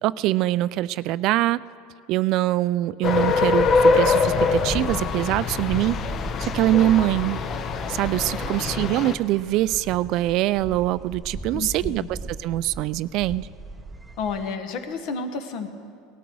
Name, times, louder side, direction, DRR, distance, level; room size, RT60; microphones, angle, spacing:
voice 1, 0.0-1.6 2.1-6.0 6.4-7.4 7.9-13.5, right 15 dB, 55° right, 18 dB, 0.3 m, -23 dB
sound 1, 3.0-9.2, left 4 dB, 40° left, 0.8 m, -23 dB
sound 2, 3.6-14.6, right 2 dB, 10° right, 0.7 m, -37 dB
voice 2, 11.5-12.1 14.2-15.7, left 4 dB, 60° left, 7 dB, 1.4 m, -31 dB
18.0 x 12.5 x 4.7 m, 2.3 s
supercardioid pair, 120°, 0 cm